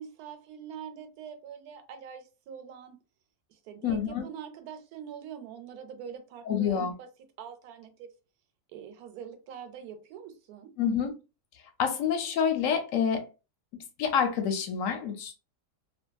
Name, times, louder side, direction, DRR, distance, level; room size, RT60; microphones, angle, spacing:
voice 1, 0.0-3.0 3.5-7.1 7.4-8.1 8.7-10.7, right 8 dB, 75° right, 1.0 m, -44 dB
voice 2, 3.8-4.2 6.5-6.9 10.8-11.1 11.8-13.3 13.7-15.3, left 7 dB, 70° left, 0.8 m, -27 dB
2.6 x 2.5 x 2.3 m
omnidirectional pair, 1.7 m